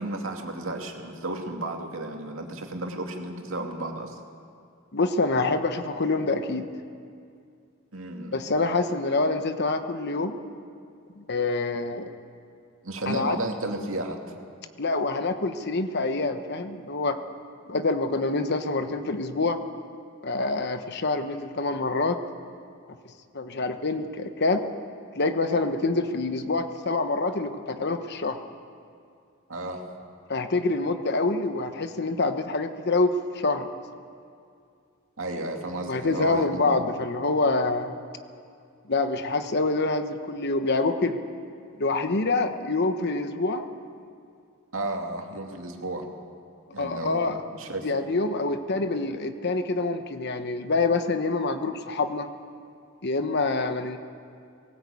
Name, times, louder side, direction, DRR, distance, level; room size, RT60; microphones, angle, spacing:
voice 1, 0.0-4.2 7.9-8.3 12.8-14.2 29.5-29.8 35.2-36.8 44.7-46.1 46.7-47.9, right 2 dB, 80° right, 2 dB, 2.5 m, -33 dB
voice 2, 4.9-6.7 8.3-10.4 11.2-12.1 13.1-13.4 14.8-17.2 17.7-19.6 20.2-22.2 23.3-24.7 25.2-28.4 30.3-33.7 35.9-37.9 38.9-41.2 41.8-43.7 46.8-47.4 47.8-52.3 53.0-54.0, left 3 dB, 55° left, 8 dB, 1.2 m, -26 dB
18.5 x 17.5 x 8.5 m, 2.4 s
head